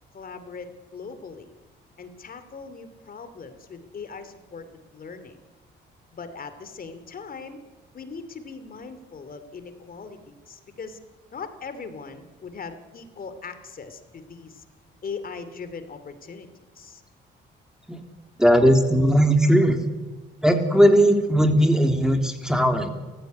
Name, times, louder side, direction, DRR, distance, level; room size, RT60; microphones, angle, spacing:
voice 1, 0.1-1.5 2.0-5.4 6.1-7.6 7.9-11.0 11.3-14.6 15.0-16.5 16.7-17.0, left 5 dB, 45° left, 10 dB, 2.9 m, -40 dB
voice 2, 18.4-19.8 20.4-22.9, equal, 5° right, 5 dB, 3.1 m, -18 dB
30.0 x 15.0 x 9.5 m, 1.3 s
cardioid pair, 90°, 20 cm